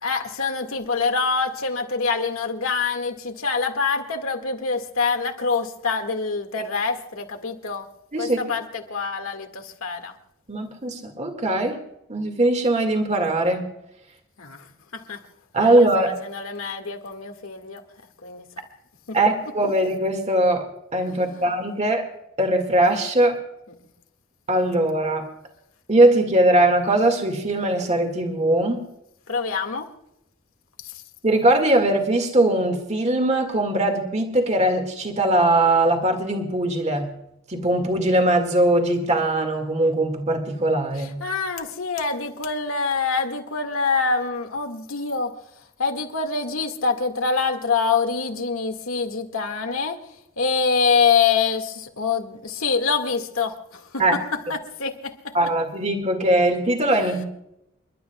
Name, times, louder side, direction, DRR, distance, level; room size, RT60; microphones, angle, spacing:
voice 1, 0.0-7.9 8.2-10.1 14.4-14.7 14.9-15.3 15.6-17.8 18.2-18.5 19.1-19.3 21.1-21.5 29.3-29.9 30.8-31.0 41.0-45.3 45.8-50.0 50.4-55.3 56.9-57.2, left 5 dB, 85° left, 1.9 m, -25 dB
voice 2, 10.5-11.8 12.1-13.7 15.5-16.2 19.1-20.7 20.9-22.1 22.4-23.4 24.5-25.3 25.9-28.8 31.2-37.2 37.5-41.2 54.0-54.1 55.3-57.2, right 1 dB, 35° right, 1.9 m, -20 dB
29.5 x 12.0 x 2.3 m
head